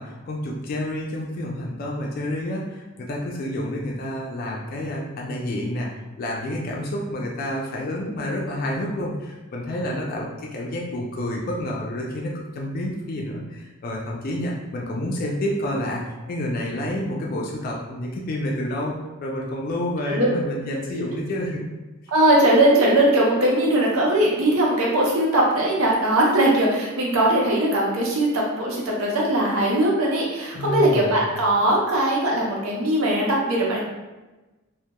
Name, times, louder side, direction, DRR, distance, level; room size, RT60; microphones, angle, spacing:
voice 1, 0.0-5.9 6.2-21.6 30.5-31.1, left 1 dB, 45° left, -2 dB, 0.3 m, -29 dB
voice 2, 22.1-33.8, right 1 dB, 90° right, -3 dB, 0.6 m, -20 dB
2.2 x 2.0 x 2.8 m, 1.1 s
head